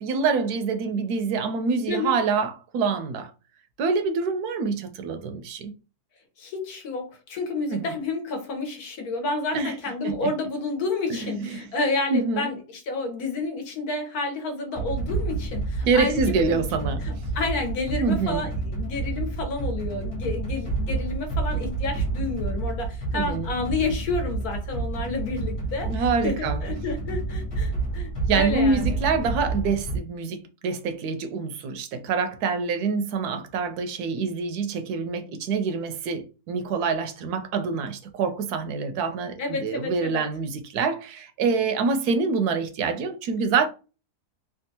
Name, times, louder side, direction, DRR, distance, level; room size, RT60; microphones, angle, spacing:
voice 1, 0.0-3.3 3.8-5.7 7.7-7.9 9.5-9.8 10.0-10.3 11.1-11.6 12.1-12.5 15.8-17.1 18.0-18.4 23.1-23.5 25.9-26.6 28.3-43.7, right 4 dB, 80° right, 1.1 m, -26 dB
voice 2, 6.4-16.6 17.0-25.9 26.2-29.0 39.4-40.2, left 3 dB, 70° left, 1.4 m, -30 dB
sound 1, 14.7-30.0, right 3 dB, 50° left, 1.5 m, -29 dB
3.5 x 2.3 x 2.7 m
omnidirectional pair, 1.7 m